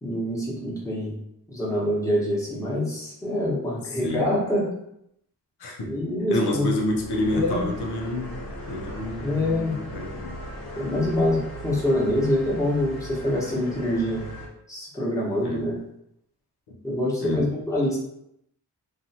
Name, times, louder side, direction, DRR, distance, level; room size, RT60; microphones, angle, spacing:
voice 1, 0.0-1.2 1.5-4.6 5.8-6.7 7.3-7.7 9.2-9.7 10.8-14.3 14.7-15.8 16.8-18.0, left 1 dB, 10° left, -6 dB, 1.0 m, -25 dB
voice 2, 3.9-4.3 5.6-5.9 6.3-10.4 15.4-15.7 17.2-17.5, left 1 dB, 85° left, 0 dB, 0.7 m, -29 dB
sound 1, 6.4-14.5, equal, 65° left, 1.1 m, -38 dB
2.7 x 2.4 x 2.7 m, 0.76 s
cardioid pair, 60°, 39 cm